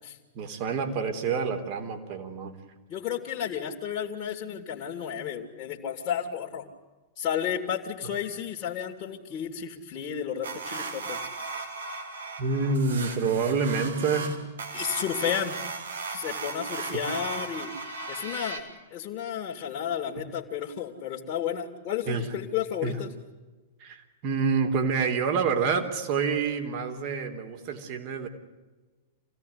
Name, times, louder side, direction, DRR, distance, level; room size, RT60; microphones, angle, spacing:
voice 1, 0.3-2.5 12.4-14.4 16.9-17.0 22.1-22.3 22.8-23.0 23.8-28.3, right 5 dB, 40° right, 5 dB, 3.6 m, -27 dB
voice 2, 2.9-6.7 7.2-11.3 14.7-15.6 16.1-17.7 18.1-23.1, left 9 dB, 35° left, -2 dB, 2.9 m, -32 dB
sound 1, 10.4-18.6, right 4 dB, 70° right, 4.0 m, -36 dB
27.5 x 17.5 x 9.8 m, 1.2 s
figure-of-eight pair, 100°, 0 cm